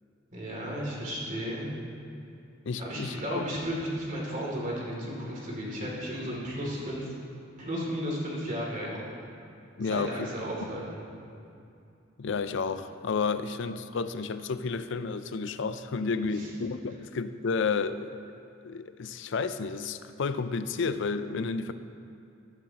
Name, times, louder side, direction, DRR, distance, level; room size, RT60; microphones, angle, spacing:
voice 1, 0.3-1.7 2.8-7.1 7.6-9.0 9.8-11.0 16.3-16.5, equal, 40° right, -4 dB, 2.7 m, -34 dB
voice 2, 2.7-3.5 9.8-10.3 12.2-18.2 18.6-21.7, left 4 dB, 65° left, 11 dB, 0.5 m, -31 dB
13.5 x 12.5 x 2.9 m, 2.6 s
head